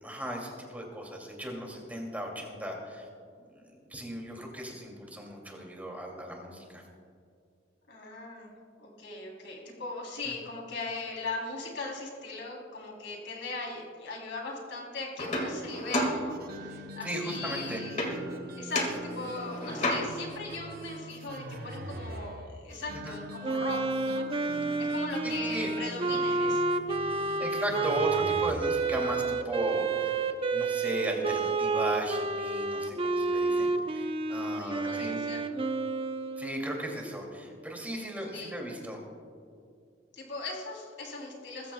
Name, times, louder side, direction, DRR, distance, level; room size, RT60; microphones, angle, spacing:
voice 1, 0.0-3.1 3.5-6.8 17.0-17.8 22.9-23.2 25.2-25.7 27.0-35.2 36.4-39.0, right 1 dB, 10° right, 0 dB, 2.5 m, -36 dB
voice 2, 7.9-8.5 8.8-18.0 18.5-24.3 24.8-26.8 34.6-35.7 38.3-38.6 40.1-41.7, left 3 dB, 65° left, -1 dB, 3.3 m, -39 dB
sound 1, 15.2-16.8 18.0-18.4 18.7-20.4 23.6-23.7 24.0-25.1, left 1 dB, 40° left, 1.9 m, -33 dB
sound 2, 16.3-29.1, right 1 dB, 55° right, 0.8 m, -43 dB
Wind instrument woodwind instrument, 23.4-36.8, right 3 dB, 30° right, 0.6 m, -30 dB
21.0 x 14.5 x 2.3 m, 2.3 s
head